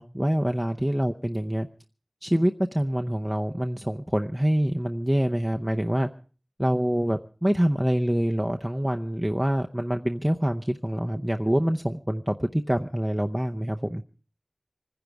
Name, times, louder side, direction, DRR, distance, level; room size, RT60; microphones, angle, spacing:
voice 1, 0.0-1.7 2.2-6.1 6.6-14.0, equal, 10° right, 4 dB, 0.7 m, -26 dB
25.5 x 10.5 x 4.7 m, 0.37 s
wide cardioid pair, 45°, 0 cm